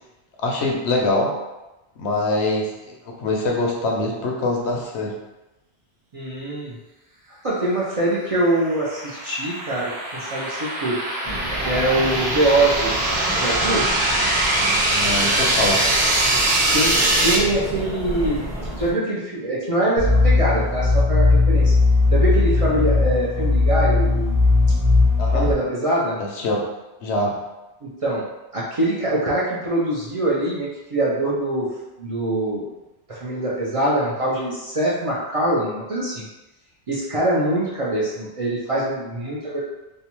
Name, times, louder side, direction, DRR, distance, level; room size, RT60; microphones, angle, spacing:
voice 1, 0.4-1.3 2.0-5.1 14.9-15.8 25.2-25.5 26.2-26.6 27.0-27.4, left 2 dB, 85° left, 0 dB, 0.9 m, -24 dB
voice 2, 6.1-6.8 7.4-11.0 11.6-13.0 13.4-13.8 16.7-18.5 18.8-21.7 22.1-24.4 25.3-26.2 28.0-28.3 28.5-31.7 32.0-32.7 33.1-36.2 36.9-39.6, right 1 dB, 50° right, -7 dB, 0.4 m, -23 dB
sound 1, 8.4-17.4, right 1 dB, 85° right, 0.9 m, -22 dB
sound 2, 11.2-18.9, equal, 5° left, 0.7 m, -31 dB
sound 3, 20.0-25.5, left 3 dB, 35° left, 0.3 m, -17 dB
2.6 x 2.2 x 2.9 m, 0.99 s
omnidirectional pair, 1.1 m